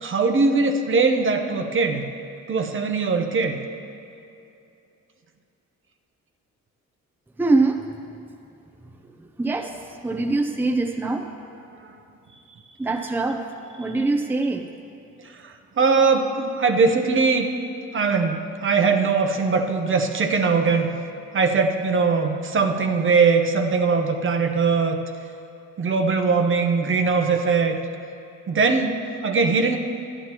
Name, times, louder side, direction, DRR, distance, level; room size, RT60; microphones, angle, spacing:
voice 1, 0.0-2.0 2.5-3.6 15.2-17.5 17.9-20.9 21.3-25.0 25.8-27.8 28.5-29.8, right 4 dB, 40° right, 5 dB, 0.8 m, -21 dB
voice 2, 7.4-7.9 9.4-11.3 12.8-13.5 13.8-14.7, right 3 dB, 5° right, 3 dB, 0.6 m, -23 dB
13.0 x 11.0 x 3.0 m, 2.7 s
cardioid pair, 90°, 30 cm